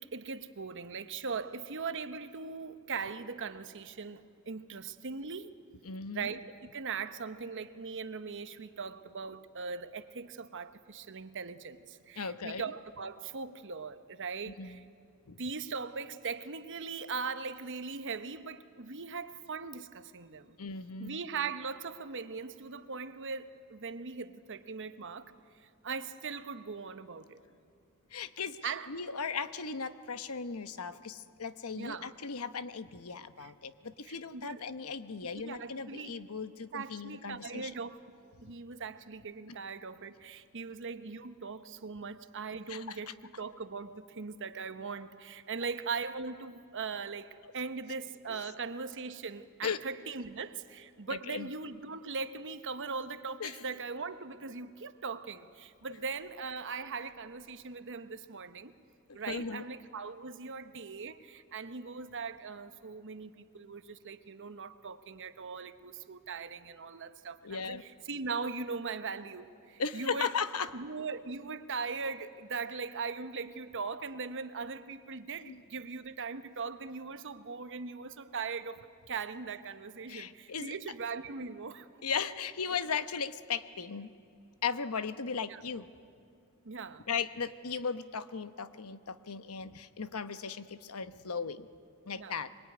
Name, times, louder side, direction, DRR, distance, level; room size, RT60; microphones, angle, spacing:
voice 1, 0.0-5.5 6.1-6.4 6.7-14.8 15.4-20.6 21.0-25.3 25.6-27.4 28.6-29.0 31.7-32.1 33.4-33.5 34.1-34.6 35.2-36.2 36.7-38.0 38.4-58.7 59.1-70.4 70.7-81.9 85.5-85.6 86.6-87.0 92.1-92.5, right 5 dB, 60° right, 10 dB, 1.1 m, -40 dB
voice 2, 5.8-6.4 12.2-12.6 14.5-14.8 15.3-15.4 20.6-21.2 28.1-37.7 38.4-38.5 42.7-43.0 48.3-48.4 49.6-49.8 51.1-51.5 53.4-53.6 59.3-59.6 67.4-67.8 69.8-70.7 75.4-75.6 80.1-80.8 82.0-84.1 84.6-85.9 87.1-91.7 92.1-92.5, left 5 dB, 75° left, 12 dB, 1.0 m, -37 dB
25.0 x 22.5 x 9.5 m, 2.5 s
head